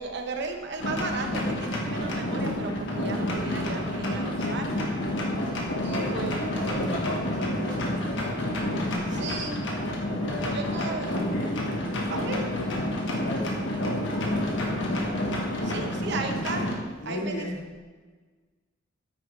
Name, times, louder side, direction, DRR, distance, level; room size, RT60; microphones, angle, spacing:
voice 1, 0.0-4.6 5.8-6.3 9.1-9.6 10.5-11.1 12.1-12.4 15.6-17.5, right 3 dB, 60° right, 4 dB, 1.1 m, -35 dB
sound 1, 0.8-16.7, left 1 dB, 70° left, 1.6 m, -29 dB
voice 2, 4.4-4.7 5.9-6.1 6.6-8.5 10.0-12.7 12.9-15.0 17.0-17.8, left 1 dB, 90° left, -3 dB, 2.8 m, -36 dB
9.7 x 8.7 x 3.4 m, 1.4 s
head